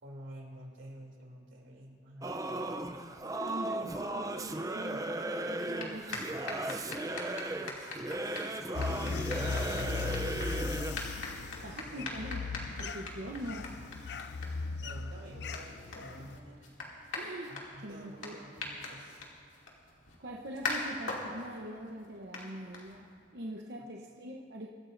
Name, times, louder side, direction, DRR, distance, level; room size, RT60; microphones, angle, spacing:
voice 1, 0.0-2.4 7.7-8.8 11.9-12.6 14.8-16.7 17.5-19.2, right 1 dB, 90° right, -1 dB, 3.1 m, -50 dB
Singing / Musical instrument, 2.2-11.1, right 2 dB, 15° right, 0.5 m, -36 dB
voice 2, 3.3-6.6 11.6-12.4 12.8-13.7 17.1-17.5 17.8-18.4 20.2-23.1 23.3-24.7, right 1 dB, 60° right, -2 dB, 0.9 m, -43 dB
sound 1, 5.5-23.3, left 3 dB, 90° left, 2.6 m, -43 dB
sound 2, 8.7-16.4, left 4 dB, 60° left, 0.5 m, -38 dB
24.5 x 14.0 x 2.6 m, 2.2 s
head